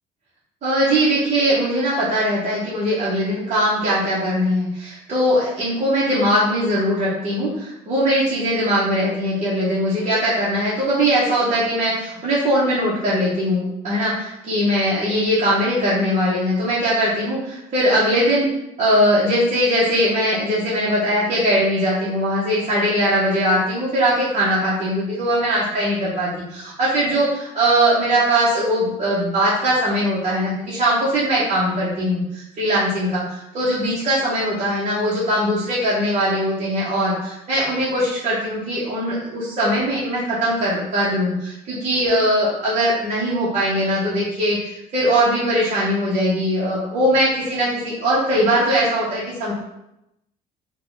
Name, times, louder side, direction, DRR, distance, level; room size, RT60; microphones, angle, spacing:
voice 1, 0.6-18.5 18.8-49.5, equal, 45° right, -8 dB, 1.1 m, -20 dB
3.6 x 2.4 x 3.9 m, 0.85 s
cardioid pair, 110°, 17 cm